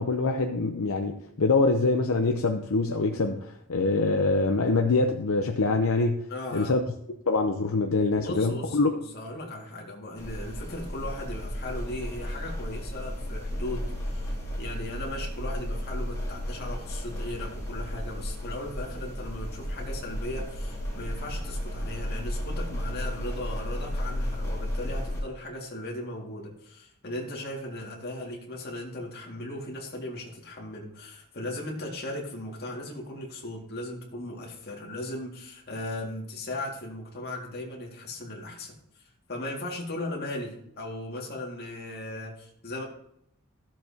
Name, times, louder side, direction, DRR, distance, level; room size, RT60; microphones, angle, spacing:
voice 1, 0.0-6.2 6.5-6.8 7.3-8.9, left 3 dB, 70° left, 4 dB, 0.7 m, -24 dB
voice 2, 6.3-6.8 8.1-38.7 39.3-42.8, left 1 dB, 45° left, -1 dB, 2.1 m, -37 dB
sound 1, 10.2-25.2, equal, 15° left, 2.3 m, -33 dB
14.0 x 7.3 x 2.8 m, 0.75 s
head